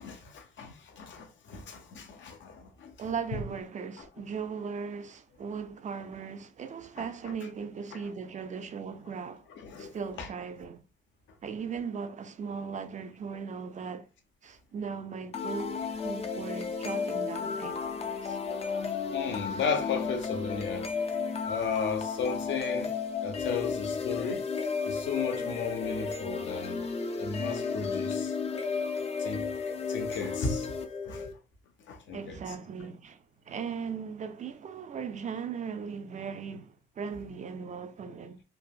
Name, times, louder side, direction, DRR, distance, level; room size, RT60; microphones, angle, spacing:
voice 1, 0.0-2.9 3.3-3.4 7.0-7.1 7.9-8.0 9.6-10.3 19.1-20.9 21.4-22.9 23.2-24.5 24.8-26.9 27.2-28.3 29.2-29.5 29.9-30.8 31.1-31.3 31.9-32.4, left 5 dB, 70° left, 0.8 m, -35 dB
voice 2, 3.0-9.5 9.8-10.8 11.4-14.1 14.4-17.8 18.2-18.4 32.1-38.4, right 6 dB, 40° right, 0.4 m, -38 dB
sound 1, 15.3-31.3, left 5 dB, 30° left, 0.5 m, -33 dB
3.3 x 2.0 x 2.3 m
cardioid pair, 90°, 20 cm